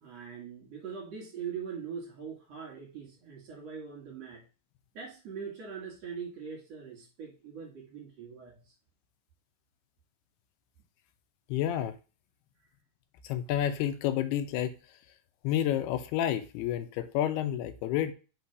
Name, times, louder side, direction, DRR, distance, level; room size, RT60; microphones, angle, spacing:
voice 1, 0.0-4.5 4.9-8.6, right 6 dB, 50° right, -2 dB, 2.4 m, -42 dB
voice 2, 11.5-12.0 13.2-14.8 15.4-18.1, left 11 dB, 80° left, 10 dB, 2.7 m, -30 dB
5.6 x 4.3 x 4.6 m, 0.32 s
omnidirectional pair, 4.6 m